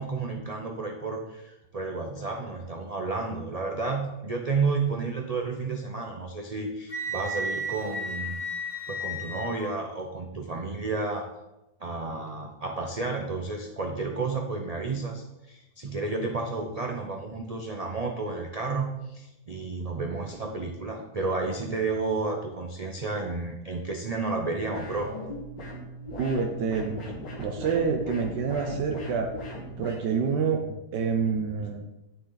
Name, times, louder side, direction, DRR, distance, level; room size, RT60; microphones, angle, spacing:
voice 1, 0.0-8.4 8.9-11.3 11.8-25.1 28.5-28.6, right 3 dB, 55° right, 2 dB, 0.4 m, -31 dB
Wind instrument woodwind instrument, 6.9-9.7, equal, 25° left, 1.1 m, -33 dB
sound 1, 24.7-30.0, equal, 85° left, 2.6 m, -38 dB
voice 2, 26.2-27.0 27.4-29.3 29.8-31.9, right 5 dB, 85° right, 3 dB, 1.4 m, -27 dB
9.1 x 6.9 x 3.9 m, 0.94 s
omnidirectional pair, 1.8 m